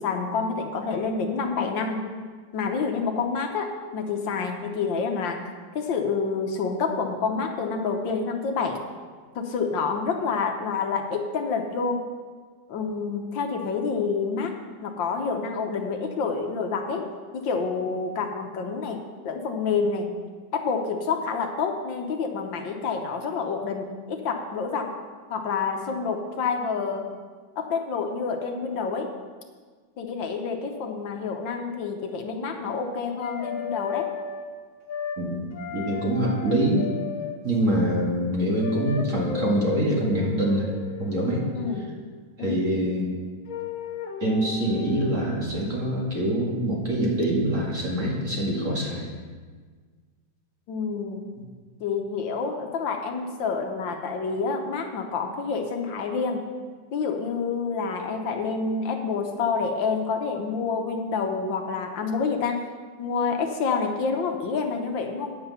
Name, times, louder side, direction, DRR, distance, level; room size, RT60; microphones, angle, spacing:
voice 1, 0.0-2.0 2.5-5.4 5.7-8.8 9.3-12.0 12.7-14.5 14.8-17.1 17.3-20.1 20.5-24.9 25.3-27.1 27.6-29.1 30.0-34.1 41.5-41.9 42.4-42.7 50.7-51.2 51.8-56.4 56.9-62.6 63.0-65.4, left 5 dB, 75° left, 4 dB, 1.6 m, -28 dB
sound 1, 33.2-34.5 34.9-35.2 35.5-37.4 38.6-42.0 43.5-45.2, left 6 dB, 55° left, 1.1 m, -35 dB
voice 2, 35.7-36.9 37.4-40.7 41.0-41.5 42.4-43.1 44.2-49.1, right 1 dB, 40° right, -3 dB, 2.2 m, -24 dB
9.6 x 7.9 x 5.6 m, 1.5 s
omnidirectional pair, 2.1 m